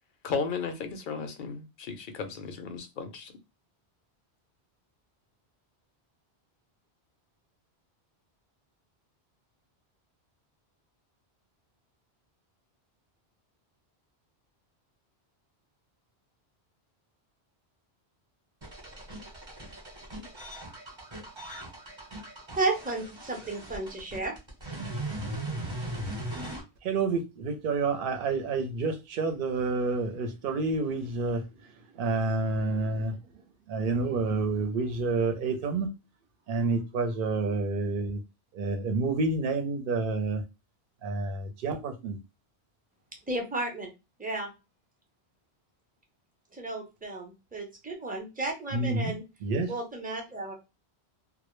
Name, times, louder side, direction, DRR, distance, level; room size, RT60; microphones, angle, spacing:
voice 1, 0.2-3.3, left 5 dB, 60° left, 0.6 m, -34 dB
sound 1, 18.6-26.6, right 1 dB, 30° right, 0.9 m, -39 dB
voice 2, 22.5-24.3 43.3-43.9 44.2-44.5 46.5-49.2 49.7-50.5, right 2 dB, 10° right, 0.5 m, -33 dB
voice 3, 26.8-31.4 31.9-33.2 33.7-35.9 36.5-38.2 38.5-40.4 41.0-42.2 48.7-49.1 49.4-49.7, right 3 dB, 60° right, 0.7 m, -29 dB
2.1 x 2.0 x 3.0 m
omnidirectional pair, 1.1 m